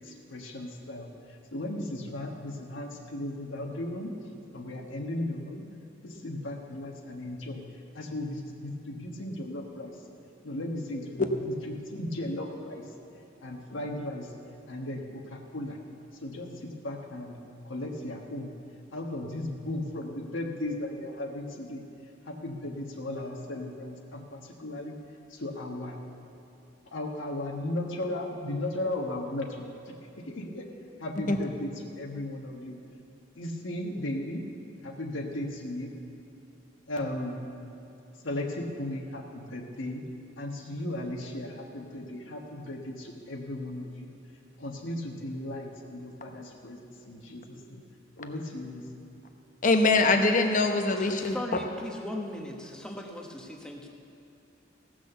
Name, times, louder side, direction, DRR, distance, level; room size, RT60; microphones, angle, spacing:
voice 1, 0.0-4.1 4.5-5.6 6.0-7.6 7.9-10.0 10.4-12.9 13.4-14.3 14.7-15.8 16.2-17.4 17.6-18.5 18.9-21.8 22.3-25.0 25.3-26.0 26.9-30.7 31.0-32.8 33.4-34.4 34.8-35.9 36.9-37.4 38.2-40.0 40.4-44.1 44.6-47.8 48.2-48.9, left 1 dB, 75° left, 0 dB, 1.3 m, -36 dB
voice 2, 49.6-51.4, left 3 dB, 40° left, 5 dB, 0.9 m, -23 dB
voice 3, 51.0-53.9, left 1 dB, 5° left, 0 dB, 1.1 m, -38 dB
17.0 x 6.3 x 6.9 m, 2.7 s
head